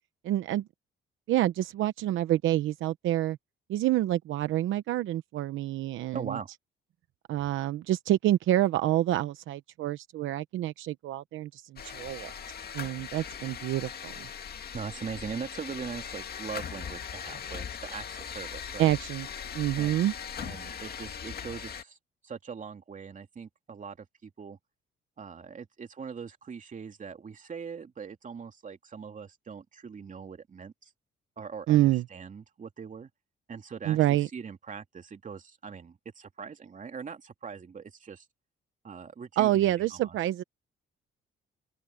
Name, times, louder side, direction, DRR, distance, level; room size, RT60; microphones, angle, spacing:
voice 1, 0.2-0.6 1.3-3.4 3.7-6.4 7.3-12.3 12.7-14.3 18.8-19.3 19.5-20.1 31.7-32.0 33.8-34.3 39.4-40.4, right 14 dB, 80° right, 0.9 m, -27 dB
voice 2, 6.1-6.5 14.7-18.9 19.8-20.1 20.4-22.0 22.2-24.6 25.2-30.9 31.4-31.8 32.1-33.1 33.5-38.2 38.8-40.1, right 6 dB, 40° right, 2.9 m, -41 dB
sound 1, 11.8-21.8, left 7 dB, 50° left, 2.2 m, -40 dB
open air
cardioid pair, 90°, 20 cm